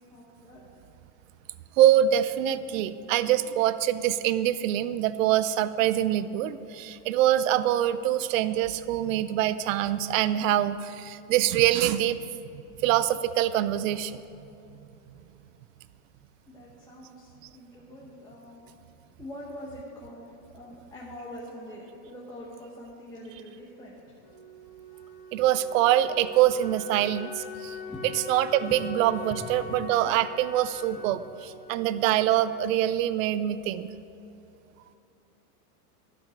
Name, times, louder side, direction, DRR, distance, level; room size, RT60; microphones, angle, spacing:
voice 1, 0.1-0.7 16.5-18.6 19.2-20.3 20.5-24.3 24.9-25.2 27.7-28.1 28.7-28.8 29.3-29.8 30.9-31.0, left 1 dB, 10° left, -5 dB, 0.9 m, -44 dB
voice 2, 1.8-12.2 12.5-14.2 25.3-27.8 28.0-33.9, right 12 dB, 55° right, 14 dB, 0.6 m, -24 dB
Wind instrument woodwind instrument, 24.2-32.9, left 5 dB, 55° left, 2.2 m, -43 dB
12.0 x 5.3 x 6.4 m, 2.8 s
supercardioid pair, 140°, 47 cm